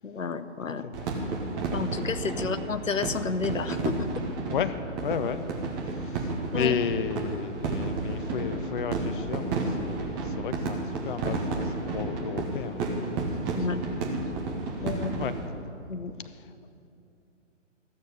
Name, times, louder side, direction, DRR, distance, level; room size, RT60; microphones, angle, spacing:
voice 1, 0.0-0.8 1.7-4.1 6.5-6.7 13.5-13.8 14.8-15.2 15.9-16.1, left 4 dB, 90° left, 12 dB, 0.8 m, -31 dB
sound 1, 0.9-15.5, right 3 dB, 20° right, 1.1 m, -32 dB
voice 2, 4.5-5.4 5.8-13.3 13.5-14.0 14.8-14.9 15.2-15.3 16.2-16.5, left 7 dB, 45° left, 11 dB, 0.5 m, -33 dB
14.5 x 6.7 x 8.1 m, 2.7 s
figure-of-eight pair, 140°, 38 cm